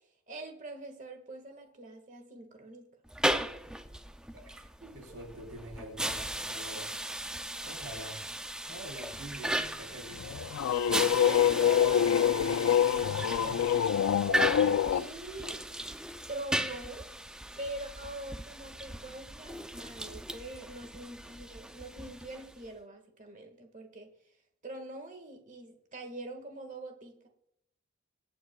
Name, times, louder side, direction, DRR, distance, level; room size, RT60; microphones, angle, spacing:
voice 1, 0.3-2.9 4.8-5.0 11.2-12.5 13.1-15.6 16.3-17.1 17.6-24.3 24.6-27.3, right 2 dB, 35° right, 5 dB, 1.6 m, -44 dB
sound 1, 3.1-22.7, right 1 dB, 5° right, 0.3 m, -37 dB
voice 2, 4.9-6.9 7.6-8.3 8.6-10.6 12.9-13.9, right 1 dB, 60° right, -1 dB, 4.1 m, -46 dB
sound 2, 10.2-15.1, left 9 dB, 80° left, 0.3 m, -26 dB
25.0 x 8.5 x 2.3 m, 0.72 s
head